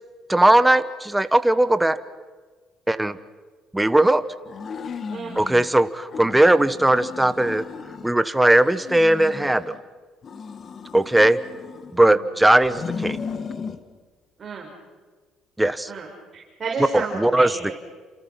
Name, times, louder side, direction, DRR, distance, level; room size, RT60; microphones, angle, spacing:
voice 1, 0.3-2.0 2.9-3.2 3.7-4.2 5.3-7.7 8.0-9.7 10.9-11.4 11.9-13.2 15.6-15.9 16.9-17.6, right 1 dB, 5° right, 13 dB, 1.1 m, -18 dB
sound 1, 4.5-5.7 6.1-8.2 8.6-9.8 10.2-12.1 12.6-13.8, left 5 dB, 40° left, 1.8 m, -35 dB
voice 2, 15.9-17.7, right 4 dB, 35° right, -2 dB, 5.8 m, -32 dB
30.0 x 27.5 x 5.7 m, 1.4 s
cardioid pair, 110°, 0 cm